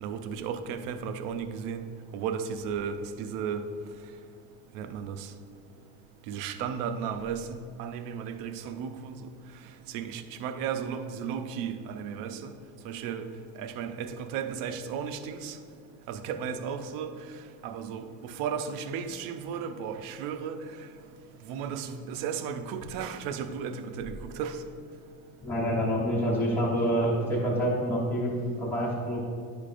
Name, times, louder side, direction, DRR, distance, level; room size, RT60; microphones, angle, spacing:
voice 1, 0.0-1.8 2.1-3.6 4.7-5.3 6.3-9.2 9.9-12.5 12.8-13.2 13.6-15.6 16.1-17.1 17.6-20.6 21.5-24.6, right 7 dB, 65° right, 9 dB, 0.6 m, -34 dB
voice 2, 25.4-29.2, equal, 5° left, -7 dB, 1.0 m, -27 dB
10.5 x 5.1 x 2.5 m, 2.4 s
cardioid pair, 165°, 37 cm